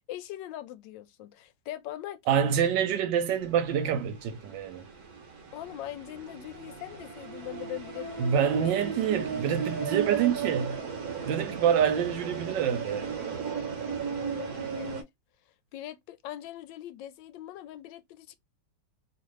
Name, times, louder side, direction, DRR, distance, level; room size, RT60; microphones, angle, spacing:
voice 1, 0.1-2.6 3.3-3.4 5.5-8.9 14.0-15.1 15.7-18.3, left 13 dB, 85° left, 1.3 m, -41 dB
voice 2, 2.3-4.8 8.2-10.8 11.2-13.2, right 8 dB, 85° right, 1.3 m, -26 dB
sound 1, 3.4-15.0, right 6 dB, 65° right, 1.2 m, -36 dB
3.0 x 2.4 x 3.1 m
omnidirectional pair, 1.9 m